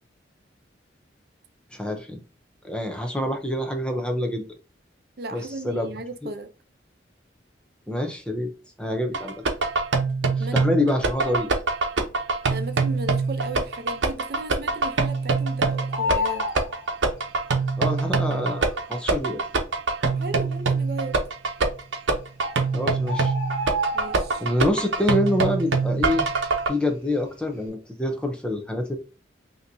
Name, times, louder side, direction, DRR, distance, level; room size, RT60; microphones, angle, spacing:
voice 1, 1.7-2.2 2.6-4.4 5.3-5.9 6.2-6.3 7.9-8.5 8.8-9.4 10.4-11.5 17.8-19.4 22.7-23.3 24.4-26.3 26.7-29.0, left 1 dB, 5° left, 0.6 m, -26 dB
voice 2, 5.2-6.5 10.3-10.7 12.5-16.5 20.0-21.2 23.9-24.5, right 2 dB, 55° right, 0.6 m, -35 dB
sound 1, 9.1-26.7, right 4 dB, 85° right, 0.8 m, -24 dB
Bird, 13.0-13.6 13.9-14.0 14.3-15.5 15.7-17.6 18.4-18.5 19.1-19.2 19.4-19.6 20.2-20.7 21.6-21.7 22.1-22.2 22.4-24.7 25.0-25.3 25.7-27.0 27.4-27.6, left 1 dB, 30° right, 2.4 m, -30 dB
5.7 x 2.9 x 2.7 m
head